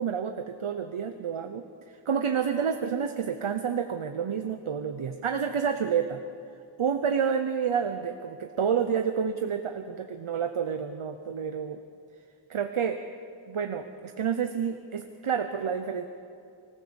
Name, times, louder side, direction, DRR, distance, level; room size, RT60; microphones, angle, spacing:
voice 1, 0.0-6.2 6.8-11.8 12.5-13.0 13.5-16.1, right 7 dB, 80° right, 7 dB, 1.0 m, -29 dB
25.5 x 16.0 x 7.1 m, 2.5 s
wide cardioid pair, 75°, 49 cm